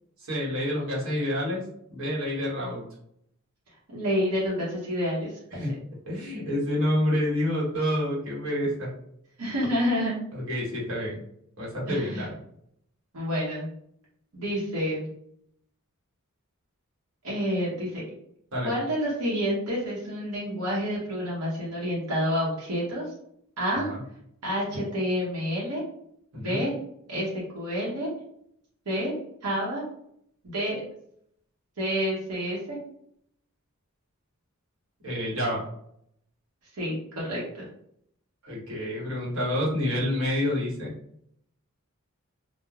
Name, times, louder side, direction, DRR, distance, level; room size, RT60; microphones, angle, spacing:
voice 1, 0.2-1.6 1.9-2.8 5.5-5.7 6.1-8.9 10.3-11.2 11.6-12.4 18.5-18.7 23.9-24.0 26.3-26.6 35.0-35.6 38.4-40.9, left 1 dB, 65° right, -5 dB, 1.1 m, -28 dB
voice 2, 3.9-5.6 9.4-10.2 11.9-12.3 13.1-13.7 14.3-15.1 17.2-18.0 18.6-23.0 23.6-23.9 24.4-25.8 26.4-26.7 27.1-27.3 27.5-28.1 28.9-29.1 29.4-29.8 30.4-30.8 31.8-32.8 36.7-37.7, equal, 90° right, -6 dB, 0.8 m, -28 dB
3.1 x 2.0 x 2.3 m, 0.72 s
head